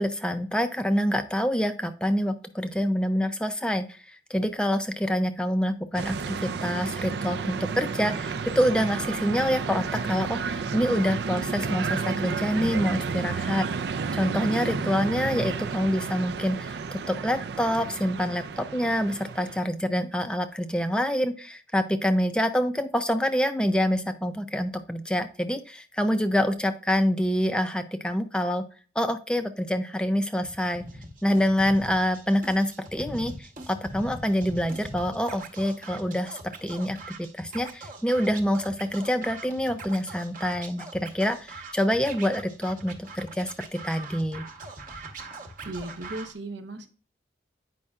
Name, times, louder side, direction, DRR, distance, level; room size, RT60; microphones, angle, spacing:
voice 1, 0.0-28.7 29.0-30.8 31.2-44.5, equal, 5° left, 8 dB, 0.4 m, -26 dB
sound 1, 5.9-19.6, right 5 dB, 65° right, 0.4 m, -31 dB
Scratching (performance technique), 30.4-46.3, right 2 dB, 45° right, 1.0 m, -42 dB
voice 2, 45.6-46.9, right 2 dB, 80° right, 6 dB, 0.9 m, -36 dB
8.5 x 5.3 x 2.3 m, 0.39 s
head